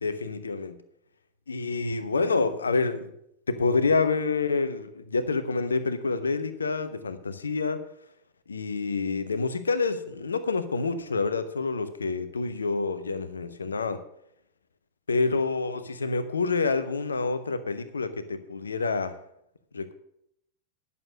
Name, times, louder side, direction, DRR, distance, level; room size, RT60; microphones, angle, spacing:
voice 1, 0.0-0.8 1.5-3.1 3.5-7.8 8.5-14.0 15.1-19.2 19.7-19.9, left 4 dB, 75° left, 11 dB, 0.9 m, -27 dB
11.0 x 6.9 x 6.4 m, 0.75 s
figure-of-eight pair, 90°, 0 cm